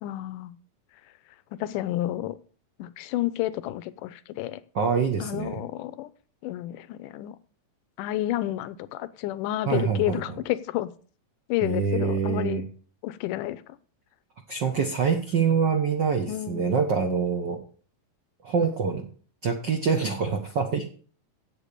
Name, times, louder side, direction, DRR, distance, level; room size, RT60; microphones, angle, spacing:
voice 1, 0.0-0.6 1.5-2.4 2.8-4.6 5.2-6.1 6.4-7.4 8.0-10.9 11.5-12.6 13.0-13.8 16.3-16.8, left 14 dB, 80° left, 2.3 m, -30 dB
voice 2, 4.7-5.6 9.7-10.2 11.6-12.7 14.5-17.6 18.4-19.1 19.4-20.9, right 6 dB, 50° right, 1.3 m, -25 dB
8.4 x 8.0 x 8.8 m
omnidirectional pair, 3.8 m